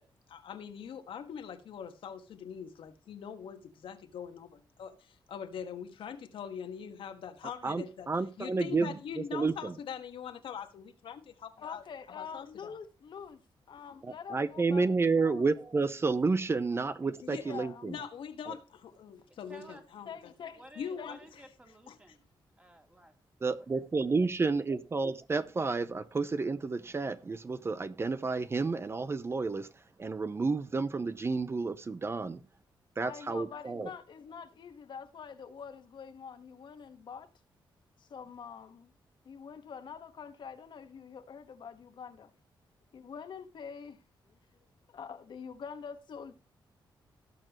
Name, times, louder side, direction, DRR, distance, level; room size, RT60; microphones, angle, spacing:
voice 1, 0.3-8.1 8.4-11.8 12.1-12.7 17.2-20.3 20.8-21.4 21.9-22.2, left 7 dB, 90° left, 1.6 m, -43 dB
voice 2, 7.6-9.7 14.0-18.0 18.5-18.6 23.4-29.7 30.0-32.4 33.0-33.9, right 4 dB, 30° right, 0.7 m, -31 dB
voice 3, 11.6-13.4 13.7-14.9 15.1-15.4 17.4-17.9 20.1-20.6 21.0-21.2 33.0-37.3 38.0-38.9 39.2-42.3 42.9-44.0 44.5-46.3, left 6 dB, 65° left, 1.5 m, -45 dB
voice 4, 19.3-19.8 20.2-22.2 22.6-23.1 24.0-24.1, right 1 dB, 15° right, 2.9 m, -54 dB
18.5 x 6.7 x 3.1 m
wide cardioid pair, 115°, 9 cm